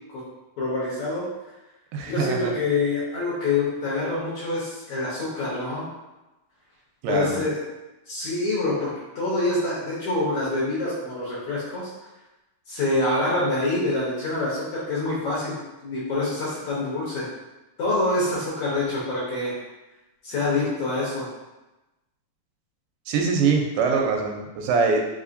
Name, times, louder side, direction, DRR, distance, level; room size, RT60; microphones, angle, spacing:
voice 1, 0.6-1.3 2.1-5.9 7.1-7.6 8.1-11.9 12.7-15.6 15.8-17.2 17.8-19.5 20.2-21.3, left 2 dB, 65° left, -8 dB, 1.9 m, -26 dB
voice 2, 1.9-2.5 7.0-7.4 23.1-25.0, right 5 dB, 85° right, 1 dB, 2.5 m, -23 dB
5.7 x 2.8 x 2.5 m, 1.0 s
omnidirectional pair, 4.3 m